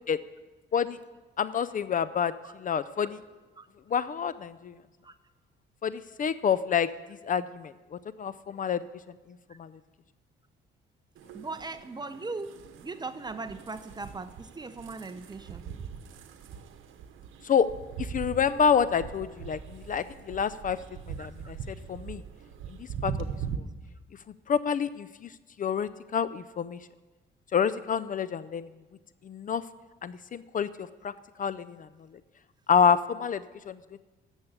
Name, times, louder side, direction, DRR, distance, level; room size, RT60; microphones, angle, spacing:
voice 1, 1.4-2.3 2.6-3.2 3.9-4.7 5.8-6.9 7.2-8.8 9.6-9.7 17.4-17.7 18.0-20.8 21.2-22.2 23.0-23.1 24.5-25.1 25.6-26.8 27.5-28.7 29.3-29.6 30.0-31.1 31.4-31.8 32.7-33.8, left 7 dB, 40° left, 15 dB, 0.5 m, -27 dB
sound 1, 11.2-23.6, right 7 dB, 80° right, 1.0 m, -41 dB
voice 2, 11.3-15.7 21.2-21.3, right 3 dB, 20° right, 11 dB, 0.8 m, -39 dB
10.5 x 7.2 x 8.0 m, 1.2 s
cardioid pair, 90°, 20 cm